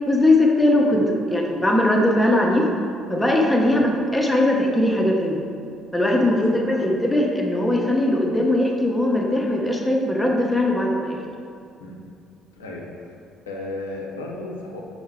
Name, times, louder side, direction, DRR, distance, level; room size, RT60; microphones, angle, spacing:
voice 1, 0.1-2.7 3.1-5.4 5.9-11.2, left 1 dB, 10° left, 0 dB, 0.6 m, -20 dB
voice 2, 6.3-6.8 10.6-10.8 11.8-12.0 12.6-13.1 13.5-14.8, left 2 dB, 85° left, -2 dB, 0.5 m, -35 dB
5.4 x 2.1 x 3.5 m, 2.4 s
hypercardioid pair, 50°, 0 cm